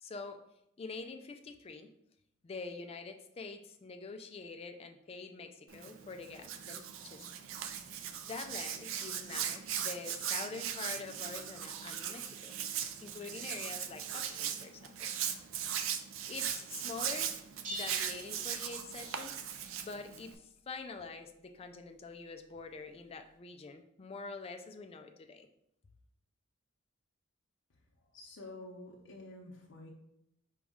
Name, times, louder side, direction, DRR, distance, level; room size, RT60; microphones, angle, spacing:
voice 1, 0.0-0.4 0.8-1.9 2.4-7.3 8.2-12.5 13.0-15.1 15.7-15.8 16.3-17.3 17.7-19.3 19.8-25.5, left 4 dB, 30° left, 6 dB, 0.3 m, -45 dB
Hands, 5.7-20.3, right 9 dB, 75° right, 0.4 m, -39 dB
sound 1, 17.6-19.2, equal, 40° right, 0.8 m, -44 dB
voice 2, 28.1-29.9, left 2 dB, 65° left, -3 dB, 0.6 m, -49 dB
5.1 x 2.3 x 3.5 m, 0.80 s
head